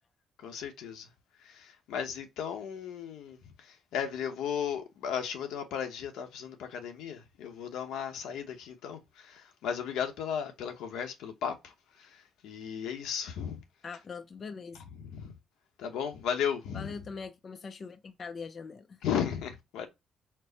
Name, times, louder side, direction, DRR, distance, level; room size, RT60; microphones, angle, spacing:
voice 1, 0.4-1.1 1.4-3.4 3.7-11.7 12.0-13.6 14.9-15.3 15.8-17.0 19.0-19.9, left 8 dB, 90° left, 0.9 m, -35 dB
voice 2, 13.8-14.8 16.7-19.0, left 5 dB, 35° left, 0.5 m, -42 dB
4.5 x 2.1 x 3.9 m
cardioid pair, 130°, 0 cm